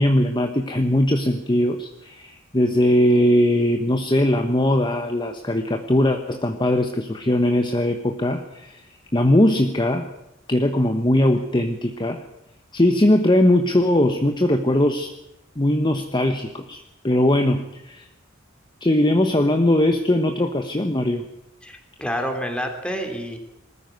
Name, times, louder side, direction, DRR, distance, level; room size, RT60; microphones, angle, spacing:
voice 1, 0.0-8.8 9.1-10.1 10.5-12.2 12.7-15.1 15.6-18.0 18.8-21.2, left 1 dB, 25° left, 5 dB, 1.2 m, -20 dB
voice 2, 21.6-23.4, equal, 5° left, 4 dB, 3.3 m, -28 dB
20.5 x 14.0 x 9.2 m, 0.86 s
head